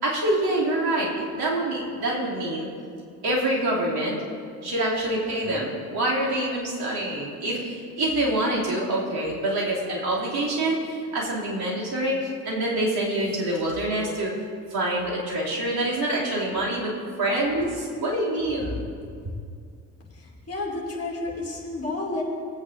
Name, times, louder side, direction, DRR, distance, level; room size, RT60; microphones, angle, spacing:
voice 1, 0.0-2.7 3.2-4.2 4.6-14.3 14.7-18.7, right 1 dB, 50° right, -5 dB, 2.7 m, -26 dB
voice 2, 20.1-22.2, left 2 dB, 30° left, -4 dB, 2.5 m, -31 dB
19.5 x 8.5 x 2.6 m, 2.3 s
figure-of-eight pair, 45°, 49 cm